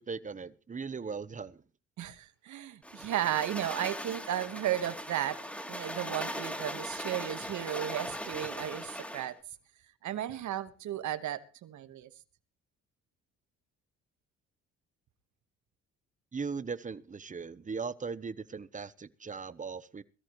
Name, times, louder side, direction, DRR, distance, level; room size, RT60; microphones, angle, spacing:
voice 1, 0.0-1.6 16.3-20.0, right 5 dB, 25° right, 0.9 m, -38 dB
voice 2, 2.0-5.4 5.7-9.4 10.0-12.1, right 12 dB, 75° right, 1.4 m, -34 dB
sound 1, 2.8-9.3, equal, 5° left, 2.9 m, -39 dB
22.0 x 14.0 x 3.1 m
cardioid pair, 90°, 30 cm